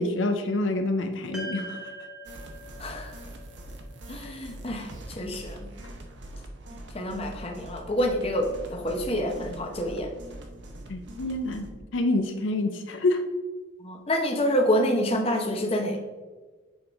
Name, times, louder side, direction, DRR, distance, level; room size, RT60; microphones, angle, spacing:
voice 1, 0.0-1.8 10.9-11.7 11.9-13.3, left 2 dB, 75° left, 7 dB, 0.5 m, -27 dB
sound 1, 1.3-5.8, right 2 dB, 5° right, 1.0 m, -43 dB
sound 2, 2.2-11.7, right 1 dB, 60° right, 0.8 m, -43 dB
voice 2, 2.8-3.2 4.1-5.7 6.7-10.1 13.8-16.0, equal, 30° left, 3 dB, 0.8 m, -27 dB
7.2 x 4.8 x 3.5 m, 1.3 s
head